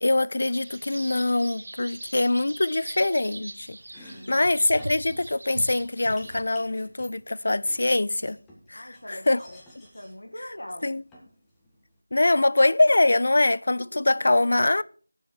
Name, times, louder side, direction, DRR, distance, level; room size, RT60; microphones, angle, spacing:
voice 1, 0.0-3.8 4.3-8.4 8.7-9.4 10.8-11.0 12.1-14.8, left 2 dB, 50° left, 0.4 m, -23 dB
sound 1, 0.5-6.4, right 2 dB, 45° right, 1.2 m, -41 dB
Domestic sounds home sounds, 3.8-12.0, left 1 dB, 5° left, 1.4 m, -53 dB
voice 2, 4.0-4.5 8.7-10.9 13.8-13.9 14.1-14.3, left 1 dB, 70° left, 1.5 m, -43 dB
15.0 x 7.3 x 4.6 m
figure-of-eight pair, 170°, 0 cm